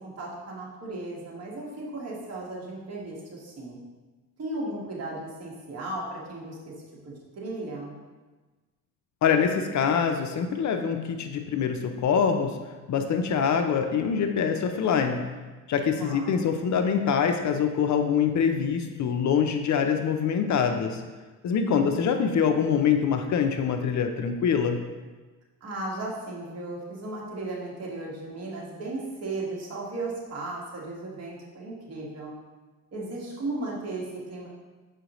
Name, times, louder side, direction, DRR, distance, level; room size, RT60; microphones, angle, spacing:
voice 1, 0.0-3.8 4.4-6.7 7.0-7.9 16.0-16.4 21.6-22.2 25.6-32.3 32.9-34.5, right 2 dB, 45° right, -4 dB, 1.6 m, -36 dB
voice 2, 9.2-12.6 12.9-15.2 15.7-21.0 21.4-24.8, left 7 dB, 55° left, 6 dB, 0.6 m, -24 dB
6.6 x 4.7 x 3.0 m, 1.3 s
cardioid pair, 125°, 34 cm